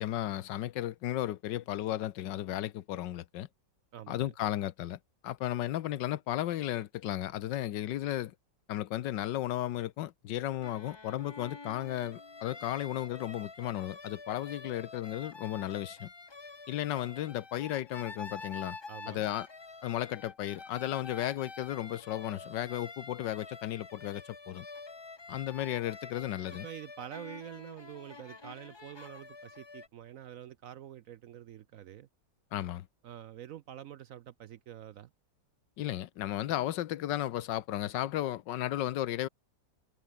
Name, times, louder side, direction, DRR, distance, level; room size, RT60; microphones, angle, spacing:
voice 1, 0.0-3.5 4.1-8.3 8.7-16.1 16.7-18.8 19.1-19.5 19.8-24.7 25.3-26.7 32.5-32.9 35.8-39.3, left 13 dB, 85° left, 1.5 m, -34 dB
voice 2, 3.9-4.3 18.9-19.3 26.6-32.1 33.0-35.1, right 11 dB, 70° right, 0.8 m, -47 dB
sound 1, 10.6-29.9, left 3 dB, 25° left, 0.6 m, -48 dB
omnidirectional pair, 1.9 m